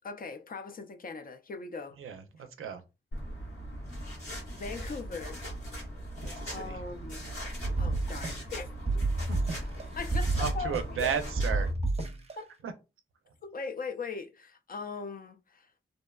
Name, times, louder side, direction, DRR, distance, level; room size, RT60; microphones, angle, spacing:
voice 1, 0.0-2.0 4.5-5.4 6.5-7.3 7.8-8.7 10.0-11.1 12.4-12.5 13.4-15.7, left 4 dB, 45° left, 0.5 m, -40 dB
voice 2, 2.0-2.8 6.2-6.8 9.3-9.6 10.3-11.7 12.6-12.7 13.3-13.4, right 6 dB, 80° right, 0.5 m, -35 dB
sound 1, 3.1-11.7, equal, 90° left, 1.2 m, -40 dB
sound 2, 7.6-8.6 8.9-9.8 10.1-11.1 11.4-12.3, right 2 dB, 30° right, 0.6 m, -29 dB
2.6 x 2.1 x 2.2 m
cardioid pair, 40°, 21 cm